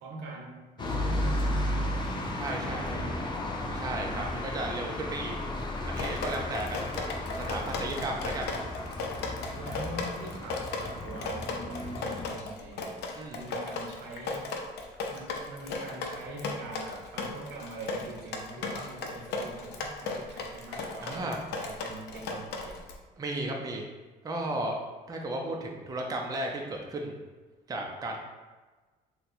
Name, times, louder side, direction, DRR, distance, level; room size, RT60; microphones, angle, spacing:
voice 1, 0.0-3.3 3.8-4.4 9.6-13.0 13.3-14.5 15.1-22.8, right 2 dB, 90° right, 0 dB, 0.7 m, -44 dB
sound 1, 0.8-12.3, left 1 dB, 25° left, 0.5 m, -34 dB
voice 2, 2.4-3.0 3.7-5.3 5.8-7.0 7.4-8.5 13.2-13.4 21.0-21.4 23.2-23.8 24.2-24.8 25.1-27.2 27.7-28.2, right 1 dB, 20° right, 1 dB, 0.5 m, -34 dB
Drip, 5.9-22.9, left 3 dB, 75° left, 0.5 m, -36 dB
2.7 x 2.2 x 4.1 m, 1.3 s
cardioid pair, 110°, 17 cm